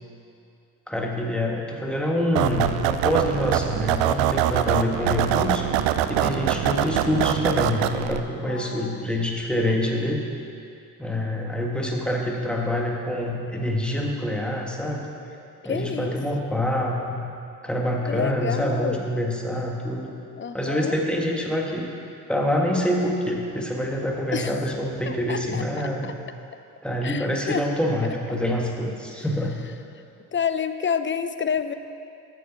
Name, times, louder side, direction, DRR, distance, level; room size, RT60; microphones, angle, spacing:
voice 1, 0.9-10.2 11.0-15.1 15.6-17.2 17.6-20.1 20.5-21.9 22.3-26.1 26.8-29.6, left 1 dB, ahead, -1 dB, 1.7 m, -26 dB
sound 1, 2.3-8.2, right 11 dB, 65° right, 0.6 m, -23 dB
voice 2, 8.5-9.1 15.6-16.2 18.1-19.0 20.3-20.9 24.3-25.6 27.0-27.7 28.3-28.4 30.3-31.7, left 7 dB, 25° left, 11 dB, 0.6 m, -29 dB
9.0 x 7.2 x 6.0 m, 2.6 s
hypercardioid pair, 50°, 48 cm